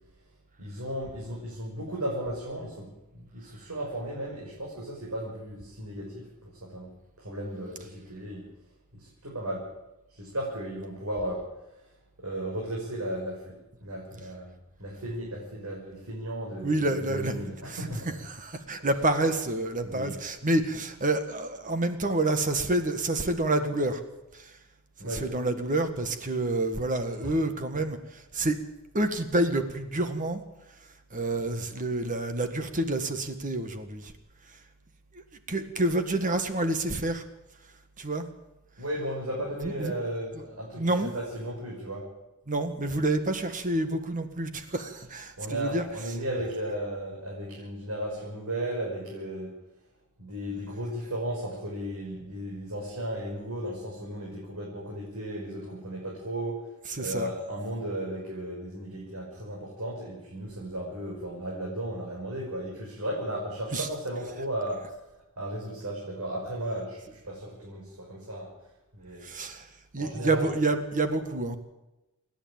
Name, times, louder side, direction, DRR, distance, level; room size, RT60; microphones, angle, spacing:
voice 1, 0.6-2.9 3.1-6.9 7.2-8.5 8.9-9.7 10.1-11.5 12.2-13.5 13.8-14.5 14.8-18.1 18.8-18.9 19.8-20.1 25.0-25.3 27.2-27.4 38.8-42.1 45.4-49.5 50.2-56.7 57.0-64.9 65.4-68.5 68.9-69.3 70.0-70.6, right 1 dB, 90° right, -3 dB, 6.0 m, -35 dB
voice 2, 16.6-17.3 17.7-17.8 18.3-24.0 24.3-24.5 25.1-28.6 28.9-30.4 31.1-34.1 35.5-37.2 38.0-38.3 39.6-39.9 40.7-41.1 42.5-45.8 56.9-57.3 63.7-63.9 69.2-71.6, right 2 dB, 40° right, 8 dB, 1.7 m, -28 dB
28.5 x 10.5 x 8.9 m, 0.97 s
head